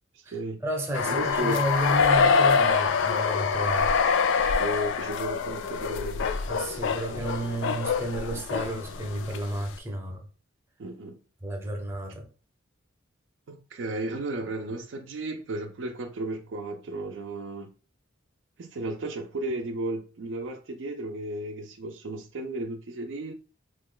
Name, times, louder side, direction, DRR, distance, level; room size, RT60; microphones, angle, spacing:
voice 1, 0.2-3.9 6.5-10.2 11.4-12.3, right 1 dB, 10° right, 0.6 m, -32 dB
sound 1, 0.9-9.4, left 5 dB, 65° left, 0.3 m, -25 dB
voice 2, 1.0-1.6 4.6-6.3 10.8-11.2 13.5-17.7 18.6-23.3, right 2 dB, 65° right, 0.4 m, -34 dB
3.0 x 2.2 x 3.7 m
head